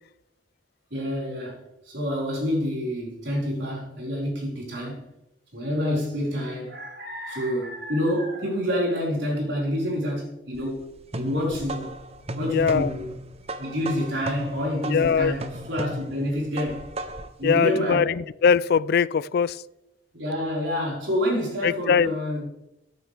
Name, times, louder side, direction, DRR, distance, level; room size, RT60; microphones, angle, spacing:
voice 1, 0.9-5.1 5.5-10.9 11.1-11.9 12.3-13.2 13.6-16.9 17.4-18.2 20.1-22.5, equal, 65° right, 4.7 m, -28 dB
sound 1, 10.5-17.4, right 1 dB, 30° right, 0.7 m, -35 dB
voice 2, 12.5-12.9 14.9-15.3 17.4-19.6 21.6-22.1, left 6 dB, 55° left, 0.3 m, -21 dB
15.0 x 9.2 x 3.4 m
head